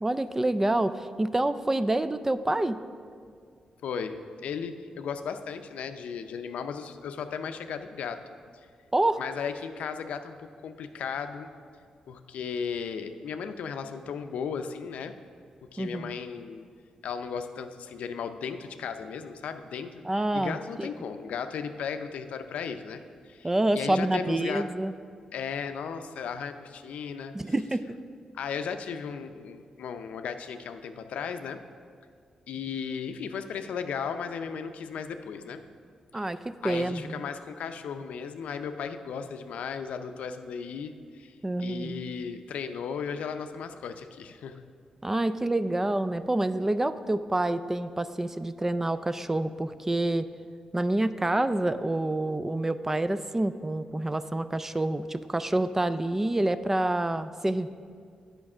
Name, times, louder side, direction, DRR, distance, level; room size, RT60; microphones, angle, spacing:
voice 1, 0.0-2.8 8.9-9.2 15.8-16.2 20.0-20.9 23.4-24.9 27.3-28.0 36.1-37.2 41.4-42.0 45.0-50.3 50.7-57.7, right 1 dB, 15° right, 13 dB, 0.3 m, -27 dB
voice 2, 3.8-8.2 9.2-11.5 12.1-15.1 15.7-16.6 17.0-24.7 25.3-27.3 28.3-31.6 32.5-35.6 36.2-36.3 36.6-44.5, left 6 dB, 85° left, 8 dB, 0.5 m, -36 dB
8.7 x 5.1 x 6.0 m, 2.1 s
cardioid pair, 80°, 2 cm